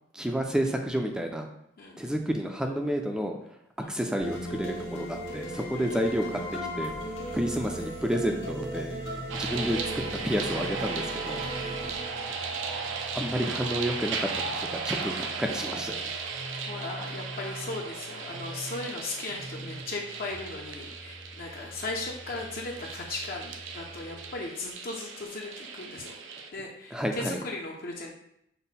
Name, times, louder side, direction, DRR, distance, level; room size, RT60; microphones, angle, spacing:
voice 1, 0.1-1.5 2.0-3.4 3.8-6.4 6.8-9.0 9.4-9.8 10.2-11.4 13.1-14.5 14.8-16.0 26.9-27.4, equal, 5° right, 3 dB, 0.4 m, -30 dB
sound 1, 4.2-14.3, equal, 80° left, 1.1 m, -38 dB
voice 2, 5.7-6.1 7.2-7.4 11.6-12.1 16.5-28.1, left 2 dB, 55° left, -1 dB, 0.6 m, -38 dB
sound 2, 8.3-24.3, right 1 dB, 45° right, 0.8 m, -45 dB
sound 3, 9.3-26.5, right 5 dB, 80° right, 0.5 m, -36 dB
5.5 x 2.1 x 4.0 m, 0.75 s
head